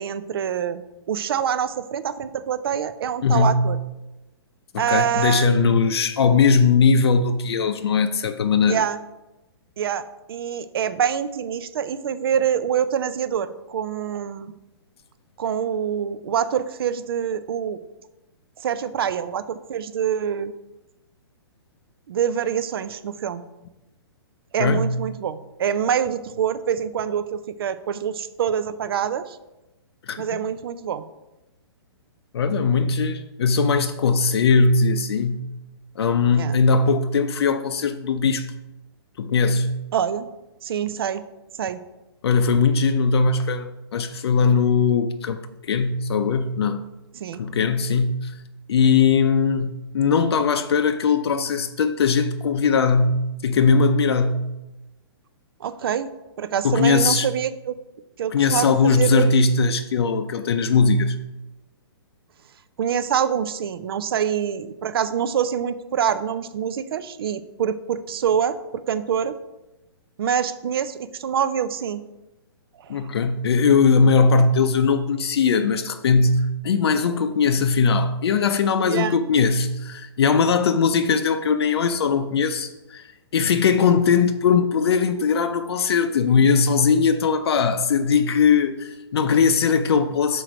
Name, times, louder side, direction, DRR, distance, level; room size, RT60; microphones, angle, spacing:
voice 1, 0.0-3.8 4.8-5.6 8.7-9.0 9.8-14.5 15.4-17.8 18.6-20.5 22.1-23.4 24.5-29.4 30.2-31.0 36.3-36.6 39.9-40.3 40.6-41.2 41.6-41.8 47.2-47.4 55.6-56.1 56.4-57.8 58.2-59.3 62.8-69.3 70.2-72.0 72.8-73.0 78.8-79.2, right 8 dB, 60° right, 0.5 m, -25 dB
voice 2, 3.2-3.7 4.7-8.8 24.6-25.0 30.1-30.3 32.3-35.4 36.0-38.5 39.2-39.8 42.2-46.9 47.4-48.3 48.7-54.4 56.6-57.3 58.3-61.2 72.9-90.4, left 5 dB, 70° left, 0.5 m, -20 dB
6.2 x 4.5 x 5.0 m
hypercardioid pair, 155°, 14 cm